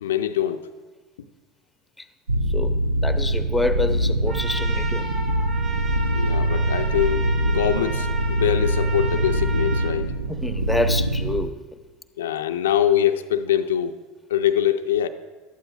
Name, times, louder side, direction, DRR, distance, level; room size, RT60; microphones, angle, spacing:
voice 1, 0.0-0.6 5.6-5.8 6.1-10.1 12.2-13.9 14.3-15.1, left 10 dB, 80° left, 7 dB, 0.4 m, -23 dB
sound 1, 2.3-11.5, right 1 dB, 90° right, 0.4 m, -23 dB
voice 2, 2.5-2.8 3.0-5.1 10.3-11.8, left 2 dB, 5° left, 9 dB, 0.8 m, -27 dB
Trumpet, 4.3-10.0, right 4 dB, 50° right, 2.0 m, -34 dB
16.5 x 12.0 x 2.3 m, 1.3 s
hypercardioid pair, 80°, 0 cm